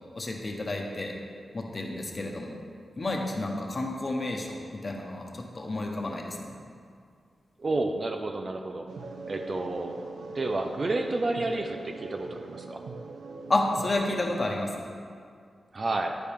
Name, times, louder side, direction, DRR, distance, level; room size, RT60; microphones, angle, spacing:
voice 1, 0.1-1.1 1.5-2.6 3.0-6.5 13.5-14.7, left 2 dB, 30° left, 0 dB, 1.2 m, -30 dB
voice 2, 7.6-8.9 9.3-10.0 10.3-12.8 15.7-16.2, right 2 dB, 40° right, 5 dB, 0.6 m, -30 dB
sound 1, 8.9-14.4, right 3 dB, 85° right, 0.8 m, -41 dB
10.5 x 10.5 x 3.6 m, 2.2 s
wide cardioid pair, 135°, 0 cm